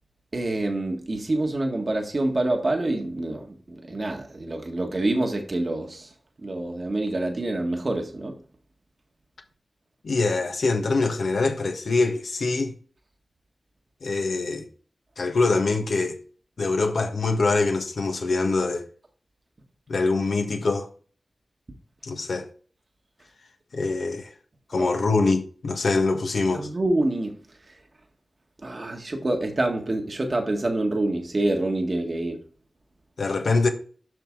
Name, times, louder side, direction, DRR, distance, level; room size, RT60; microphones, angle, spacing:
voice 1, 0.3-6.1 6.4-8.4 24.7-24.9 26.5-27.3 28.6-32.4, right 2 dB, 50° right, 1.8 m, -26 dB
voice 2, 10.0-12.7 14.0-14.7 15.2-16.2 16.6-18.9 19.9-20.9 22.0-22.5 23.7-24.3 24.7-26.7 33.2-33.7, left 3 dB, 75° left, 1.6 m, -24 dB
8.0 x 6.1 x 4.0 m
cardioid pair, 50°, 0 cm